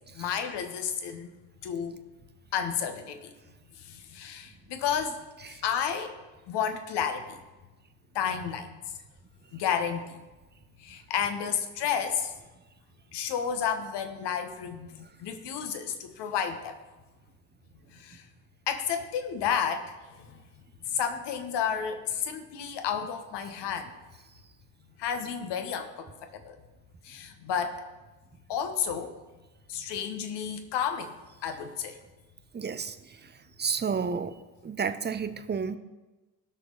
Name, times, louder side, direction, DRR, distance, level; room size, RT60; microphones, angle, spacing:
voice 1, 0.1-1.3 1.6-2.0 2.5-3.3 3.8-5.2 5.5-6.2 6.5-7.4 8.1-8.7 9.5-10.2 10.8-12.3 13.1-16.8 17.9-18.2 18.7-20.4 20.9-23.9 25.0-26.6 27.0-27.8 28.5-29.1 29.7-31.1 31.4-32.0, left 8 dB, 60° left, 7 dB, 1.4 m, -31 dB
voice 2, 32.5-33.3 33.6-34.4 34.6-35.8, right 6 dB, 20° right, 11 dB, 0.8 m, -31 dB
17.0 x 6.4 x 4.1 m, 1.2 s
figure-of-eight pair, 45°, 46 cm